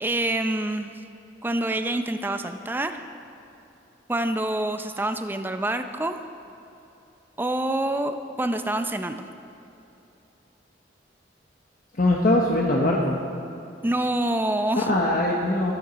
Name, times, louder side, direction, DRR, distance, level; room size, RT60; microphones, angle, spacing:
voice 1, 0.0-0.9 1.4-3.0 4.1-6.2 7.4-9.3 13.8-14.9, right 1 dB, 10° right, 7 dB, 0.5 m, -26 dB
voice 2, 11.9-13.2 14.8-15.7, left 1 dB, 50° left, -2 dB, 1.0 m, -22 dB
14.0 x 13.0 x 4.0 m, 2.9 s
head